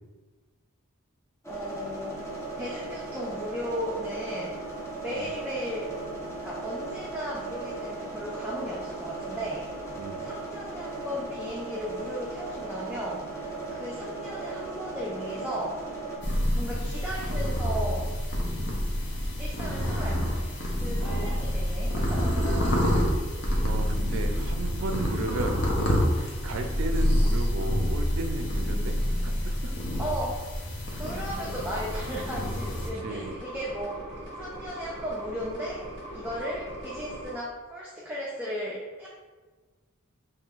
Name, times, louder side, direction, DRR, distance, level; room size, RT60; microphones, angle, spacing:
sound 1, 1.4-16.2, right 3 dB, 15° left, 0.8 m, -37 dB
voice 1, 1.5-2.3 2.6-4.6 5.0-5.9 6.4-9.7 10.2-13.2 13.7-15.8 16.6-18.0 19.4-22.8 30.0-30.4 30.9-34.0 34.4-35.8 36.1-39.1, equal, 10° right, -5 dB, 0.4 m, -35 dB
sound 2, 16.2-32.9, equal, 55° left, 0.8 m, -27 dB
voice 2, 20.7-21.5 23.6-25.6 26.0-29.0 29.2-29.7 33.0-33.3, right 2 dB, 65° right, 5 dB, 0.4 m, -35 dB
sound 3, 31.3-37.3, equal, 25° right, 1.5 m, -41 dB
5.4 x 2.7 x 2.4 m, 1.3 s
head